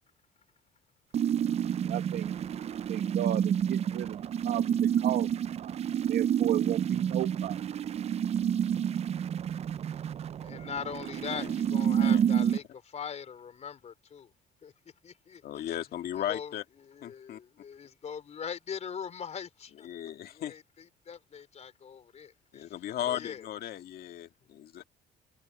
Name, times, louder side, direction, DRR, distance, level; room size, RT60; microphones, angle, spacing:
sound 1, 1.1-12.6, right 9 dB, 40° right, 0.5 m, -29 dB
voice 1, 1.8-2.3 2.9-5.3 5.6-5.7 6.1-7.6, right 12 dB, 65° right, 1.5 m, -34 dB
voice 2, 10.4-14.3 14.6-14.7 15.0-15.8 16.1-22.8 23.1-23.5, left 7 dB, 40° left, 4.1 m, -42 dB
voice 3, 11.9-12.2 15.4-16.6 17.0-17.4 19.8-20.5 22.5-24.8, left 11 dB, 65° left, 1.9 m, -36 dB
cardioid pair, 110°, 17 cm